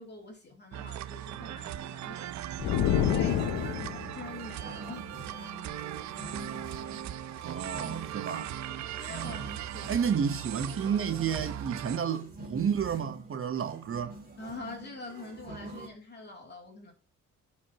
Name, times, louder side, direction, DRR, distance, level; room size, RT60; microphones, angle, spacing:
voice 1, 0.0-2.3 2.6-5.1 8.7-10.0 14.4-16.9, left 3 dB, 35° left, 2.9 m, -45 dB
sound 1, 0.7-12.0, right 11 dB, 65° right, 0.6 m, -39 dB
sound 2, 2.6-4.2, left 9 dB, 75° left, 0.7 m, -27 dB
sound 3, 2.6-15.9, right 2 dB, 30° right, 3.0 m, -46 dB
voice 2, 7.4-8.5 9.1-9.5 9.9-14.2, right 7 dB, 45° right, 1.1 m, -31 dB
11.0 x 5.3 x 2.9 m
cardioid pair, 90°, 30 cm